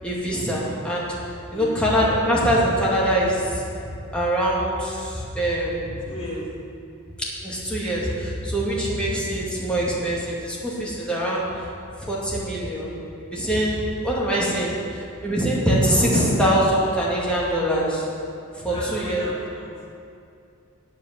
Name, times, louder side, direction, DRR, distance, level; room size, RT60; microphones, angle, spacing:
voice 1, 0.0-1.2 1.5-6.0 7.4-11.7 12.1-12.9 13.2-18.1 18.6-19.2, equal, 5° left, -7 dB, 2.3 m, -23 dB
voice 2, 1.5-1.8 6.0-6.5 18.6-19.9, equal, 25° left, -6 dB, 2.5 m, -36 dB
8.8 x 7.8 x 8.1 m, 2.5 s
head